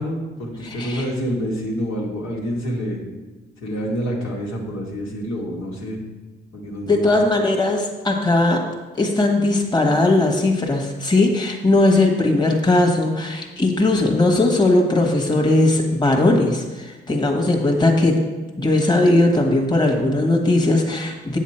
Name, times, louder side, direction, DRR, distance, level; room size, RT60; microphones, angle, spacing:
voice 1, 0.0-3.0 3.6-6.0 6.5-7.1, equal, 90° left, -3 dB, 2.0 m, -27 dB
voice 2, 0.6-1.1 6.9-8.6 9.0-18.2 18.6-21.4, left 2 dB, 20° left, 1 dB, 1.4 m, -18 dB
8.3 x 7.3 x 4.4 m, 1.2 s
cardioid pair, 90°, 20 cm